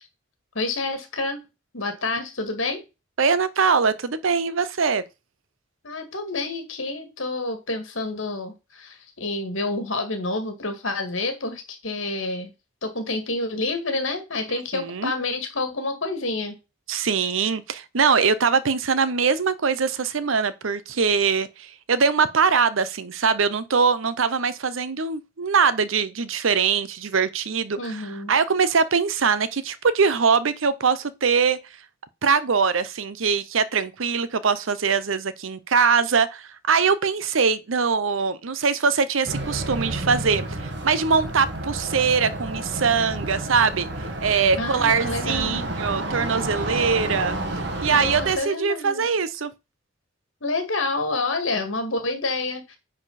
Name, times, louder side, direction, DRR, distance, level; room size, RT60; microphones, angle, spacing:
voice 1, 0.5-1.4 1.7-2.8 5.8-12.5 12.8-16.6 27.8-28.3 44.6-45.6 47.9-49.0 50.4-52.8, left 2 dB, 75° left, 2.1 m, -28 dB
voice 2, 3.2-5.0 14.7-15.1 16.9-31.6 32.2-43.9 44.2-47.4 47.8-49.5, right 5 dB, 80° right, 0.7 m, -22 dB
sound 1, 39.2-48.4, right 1 dB, 55° right, 1.5 m, -30 dB
9.8 x 4.3 x 4.2 m
head